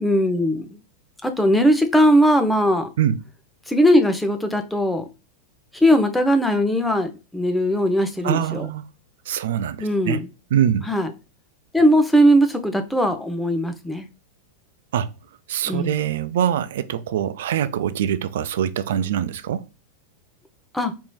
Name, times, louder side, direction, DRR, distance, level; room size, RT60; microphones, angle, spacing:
voice 1, 0.0-0.7 1.2-2.9 3.7-5.0 5.7-8.7 9.8-10.3 10.9-11.1 11.7-14.1 15.7-15.9 20.7-20.9, equal, 5° left, 0.6 m, -19 dB
voice 2, 8.2-8.9 9.3-10.2 10.5-10.9 14.9-15.1 15.5-19.7, right 10 dB, 55° right, 0.3 m, -23 dB
4.5 x 3.0 x 2.3 m
figure-of-eight pair, 90°, 0 cm